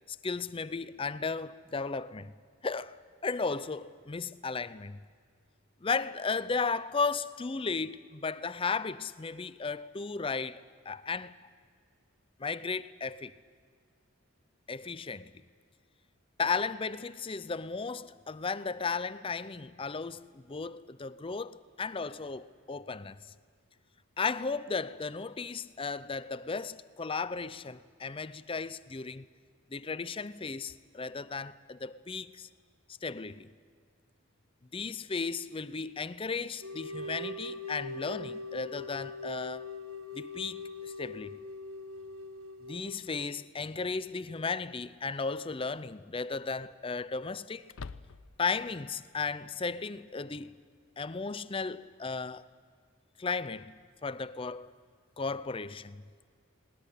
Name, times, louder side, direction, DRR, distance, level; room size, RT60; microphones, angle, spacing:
voice 1, 0.1-2.3 2.6-5.0 5.8-11.3 12.4-13.3 14.7-15.3 16.4-23.2 24.2-29.3 29.7-32.5 33.0-33.5 34.7-39.7 40.1-41.4 42.7-47.6 48.4-50.5 51.0-52.5 53.2-53.7 54.0-54.7 55.2-56.0, left 4 dB, 25° left, 0.5 m, -35 dB
sound 1, 36.6-43.4, left 3 dB, 70° right, 1.5 m, -42 dB
sound 2, 43.1-43.2 45.0-45.4 45.7-45.8 47.6-48.5, left 4 dB, 65° left, 0.6 m, -46 dB
20.0 x 19.5 x 10.0 m
head